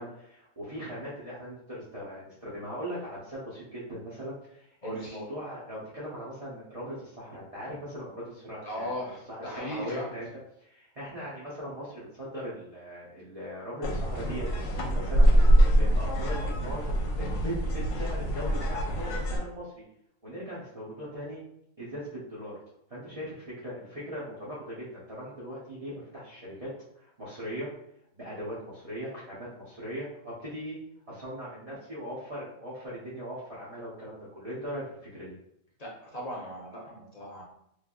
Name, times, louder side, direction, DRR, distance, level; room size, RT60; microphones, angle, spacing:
voice 1, 0.0-10.3 10.6-16.9 17.2-19.8 20.2-21.4 21.8-22.5 22.9-27.7 28.1-30.8 31.1-35.3, equal, 35° right, -9 dB, 0.6 m, -39 dB
voice 2, 4.8-5.2 8.6-10.1 35.8-37.4, equal, 40° left, -5 dB, 0.6 m, -37 dB
sound 1, 13.8-19.4, equal, 70° left, 0.9 m, -24 dB
3.1 x 2.5 x 2.3 m, 0.76 s
omnidirectional pair, 1.5 m